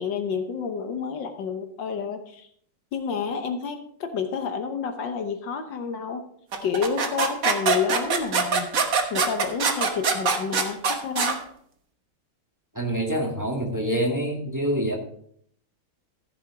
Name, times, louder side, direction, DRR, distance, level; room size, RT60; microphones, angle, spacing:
voice 1, 0.0-2.5 2.9-6.2 6.6-8.7 9.1-11.4, left 6 dB, 70° left, 7 dB, 1.6 m, -29 dB
sound 1, 6.5-11.4, right 5 dB, 50° right, 1.5 m, -23 dB
voice 2, 12.7-14.9, right 1 dB, 10° right, 0 dB, 1.9 m, -26 dB
14.5 x 6.2 x 4.9 m, 0.64 s
omnidirectional pair, 2.1 m